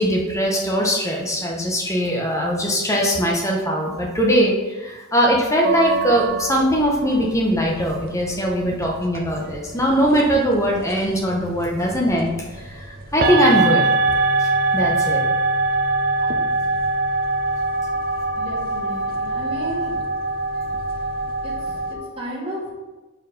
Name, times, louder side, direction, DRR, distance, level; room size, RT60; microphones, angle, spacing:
voice 1, 0.0-12.3 12.6-13.8 14.7-15.2, equal, 15° left, -1 dB, 1.0 m, -20 dB
sound 1, 5.6-21.9, right 3 dB, 45° right, 0.6 m, -24 dB
voice 2, 18.4-20.0 21.4-22.7, right 1 dB, 25° right, -7 dB, 2.2 m, -33 dB
4.6 x 4.5 x 5.3 m, 1.2 s
head